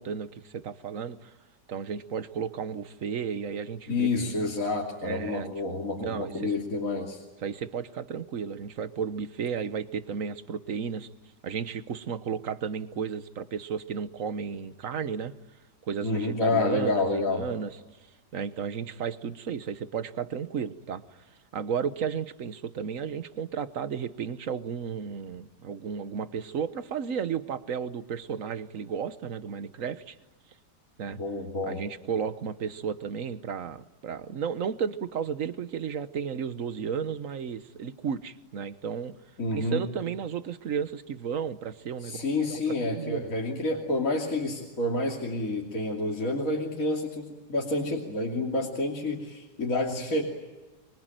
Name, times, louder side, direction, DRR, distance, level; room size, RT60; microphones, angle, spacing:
voice 1, 0.0-1.3 1.7-4.4 5.0-5.5 6.0-6.5 7.4-11.1 11.4-15.3 15.9-17.8 18.3-21.2 21.5-30.2 31.0-31.2 31.6-39.1 39.5-43.2, right 7 dB, 55° right, 13 dB, 1.4 m, -33 dB
voice 2, 3.9-7.2 16.0-17.4 31.2-31.8 39.4-39.8 42.0-50.2, left 2 dB, 50° left, -1 dB, 3.3 m, -29 dB
25.5 x 24.0 x 9.1 m, 1.2 s
omnidirectional pair, 1.8 m